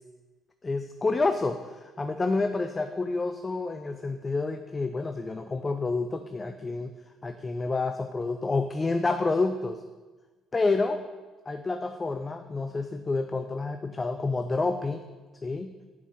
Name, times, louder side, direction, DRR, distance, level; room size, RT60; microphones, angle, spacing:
voice 1, 0.6-6.9 7.2-9.8 10.5-11.0 11.5-15.0 15.4-15.7, left 3 dB, 30° left, 7 dB, 0.5 m, -29 dB
7.1 x 5.6 x 6.2 m, 1.3 s
supercardioid pair, 65°, 0 cm